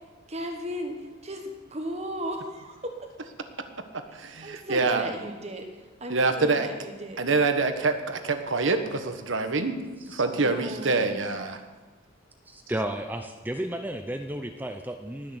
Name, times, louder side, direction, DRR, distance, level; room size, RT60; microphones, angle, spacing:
voice 1, 0.3-3.1 4.4-7.2 10.3-11.1, equal, 35° right, 3 dB, 1.3 m, -36 dB
voice 2, 4.1-5.1 6.1-6.7 7.2-9.8 10.1-11.6, right 3 dB, 75° right, 8 dB, 1.3 m, -26 dB
voice 3, 12.5-15.4, right 1 dB, 10° right, 6 dB, 0.6 m, -33 dB
19.0 x 6.5 x 7.9 m, 1.3 s
head